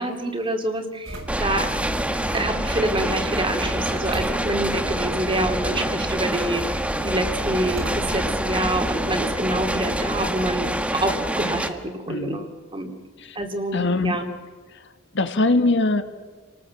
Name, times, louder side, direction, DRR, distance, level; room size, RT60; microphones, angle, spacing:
voice 1, 0.0-1.7 2.3-12.9 13.4-14.2, right 1 dB, 25° right, 5 dB, 2.6 m, -27 dB
sound 1, 1.0-10.5, right 1 dB, 80° right, 5.9 m, -34 dB
sound 2, 1.3-11.7, right 1 dB, 5° right, 1.3 m, -26 dB
voice 2, 12.1-12.4 13.2-13.4 13.7-14.3 14.7-14.8 15.1-16.0, left 2 dB, 65° left, 8 dB, 1.6 m, -22 dB
29.5 x 19.0 x 7.5 m, 1.4 s
head